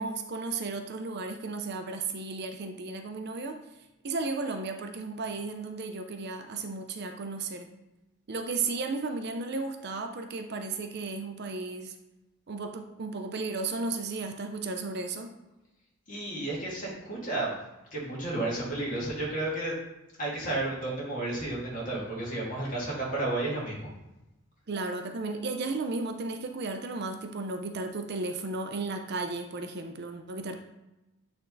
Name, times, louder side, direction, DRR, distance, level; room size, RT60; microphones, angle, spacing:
voice 1, 0.0-3.6 4.0-7.7 8.3-11.9 12.5-15.3 24.7-30.6, right 3 dB, 50° right, 6 dB, 0.5 m, -34 dB
voice 2, 16.1-17.6 17.9-19.8 20.2-23.9, right 2 dB, 35° left, -5 dB, 2.3 m, -32 dB
8.9 x 3.5 x 3.9 m, 0.99 s
head